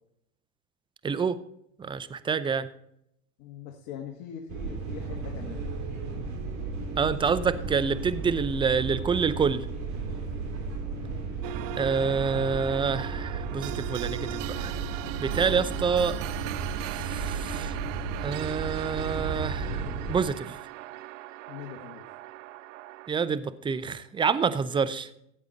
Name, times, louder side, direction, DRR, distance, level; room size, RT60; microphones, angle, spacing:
voice 1, 1.0-1.4 1.8-2.7 7.0-9.6 11.8-14.7 15.2-16.1 16.9-17.7 18.2-20.6 23.1-25.1, right 5 dB, 10° right, 14 dB, 0.5 m, -27 dB
voice 2, 3.4-5.6 10.9-11.2 15.4-15.9 21.5-22.1, left 8 dB, 50° left, 2 dB, 1.8 m, -42 dB
sound 1, 4.5-20.2, right 4 dB, 45° right, 3.3 m, -34 dB
sound 2, 11.4-23.1, right 16 dB, 65° right, 0.7 m, -39 dB
14.5 x 8.0 x 4.1 m, 0.76 s
hypercardioid pair, 105°, 41 cm